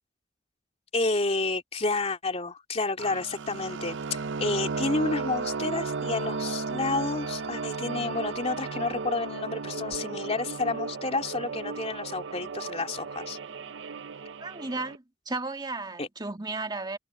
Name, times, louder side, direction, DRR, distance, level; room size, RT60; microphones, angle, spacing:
voice 1, 0.9-4.0 4.4-13.4 16.0-16.1, left 3 dB, 35° left, 2.7 m, -30 dB
sound 1, 3.0-15.0, right 4 dB, 70° right, 0.6 m, -34 dB
voice 2, 14.4-17.0, right 3 dB, 25° right, 2.1 m, -34 dB
head